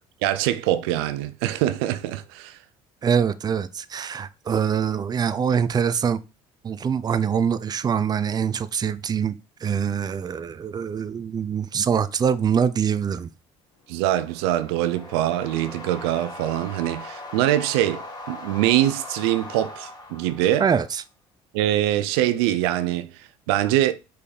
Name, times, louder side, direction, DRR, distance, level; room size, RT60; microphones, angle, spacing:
voice 1, 0.2-2.6 13.9-20.7 21.5-23.9, right 13 dB, 90° right, 0.6 m, -23 dB
voice 2, 3.0-6.2 6.6-9.3 9.6-13.3 20.6-21.0, right 7 dB, 30° right, 0.6 m, -24 dB
sound 1, 13.8-20.9, left 2 dB, 30° left, 2.5 m, -40 dB
5.2 x 4.7 x 4.9 m
supercardioid pair, 85°, 13 cm